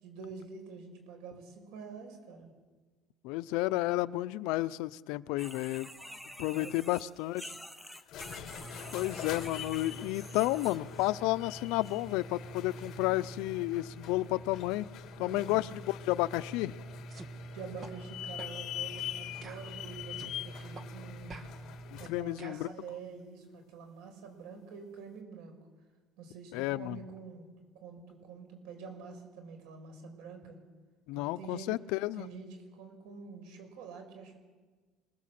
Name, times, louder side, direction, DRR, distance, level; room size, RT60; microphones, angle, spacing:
voice 1, 0.0-2.5 6.5-6.7 15.2-15.6 17.5-21.5 22.0-25.5 26.2-27.5 27.8-30.6 31.1-31.7 32.2-34.4, right 5 dB, 90° right, 5 dB, 6.4 m, -47 dB
voice 2, 3.2-5.9 6.4-7.6 8.9-14.9 15.2-16.8 21.9-22.7 26.5-27.0 31.1-32.3, left 18 dB, 80° left, 15 dB, 0.7 m, -32 dB
sound 1, 5.4-11.1 11.5-12.0 12.7-12.8 13.4-13.5, equal, ahead, 0.9 m, -48 dB
sound 2, 7.9-22.2, left 5 dB, 50° left, 2.5 m, -43 dB
sound 3, 17.1-17.3 17.8-17.9 18.4-18.6 19.0-19.1 19.4-20.3 20.7-20.9 21.3-22.7, right 3 dB, 30° right, 1.6 m, -49 dB
26.5 x 20.5 x 7.7 m, 1.4 s
cardioid pair, 165°, 0 cm